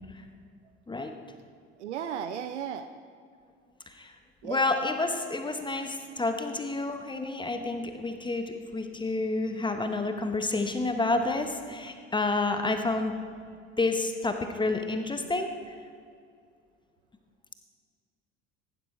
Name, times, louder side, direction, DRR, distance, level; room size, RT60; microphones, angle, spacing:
voice 1, 1.8-2.9 4.4-4.6, right 8 dB, 75° right, 10 dB, 0.6 m, -35 dB
voice 2, 4.4-13.1 13.8-15.7, left 2 dB, 15° left, 6 dB, 1.0 m, -29 dB
15.0 x 12.0 x 3.3 m, 2.2 s
figure-of-eight pair, 60°, 35 cm